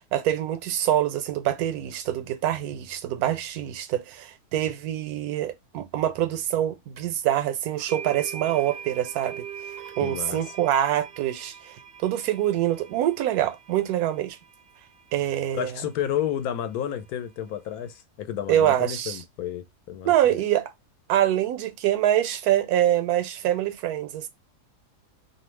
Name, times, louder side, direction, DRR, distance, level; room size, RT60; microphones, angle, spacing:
voice 1, 0.1-9.5 10.0-11.7 12.0-14.4 15.1-15.7 18.5-19.2 20.0-20.7 21.1-24.3, right 12 dB, 85° right, 1.1 m, -25 dB
sound 1, 7.0-7.1 7.9-15.9, right 8 dB, 65° right, 0.6 m, -42 dB
voice 2, 10.0-10.5 15.5-20.1, left 10 dB, 80° left, 1.0 m, -31 dB
2.7 x 2.1 x 3.1 m
omnidirectional pair, 1.6 m